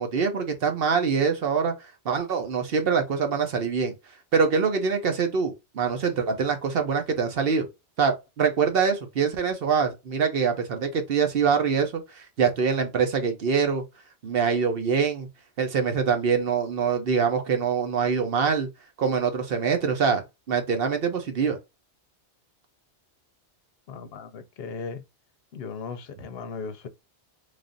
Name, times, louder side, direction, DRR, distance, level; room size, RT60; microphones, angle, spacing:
voice 1, 0.0-1.7 2.0-3.9 4.3-7.7 8.0-13.8 14.2-15.3 15.6-18.7 19.0-21.6, right 6 dB, 60° right, 0.9 m, -24 dB
voice 2, 23.9-25.0 25.5-26.9, left 5 dB, 65° left, 0.8 m, -37 dB
3.3 x 2.4 x 3.8 m
omnidirectional pair, 1.2 m